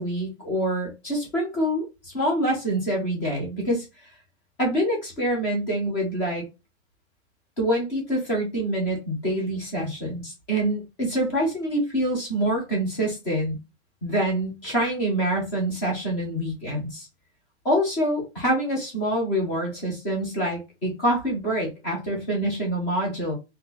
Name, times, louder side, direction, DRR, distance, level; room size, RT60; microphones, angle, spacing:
voice 1, 0.0-3.8 4.6-6.4 7.6-13.6 14.0-17.1 17.6-23.3, right 1 dB, 10° left, 0.4 m, -26 dB
2.7 x 2.5 x 3.5 m
supercardioid pair, 175°, 34 cm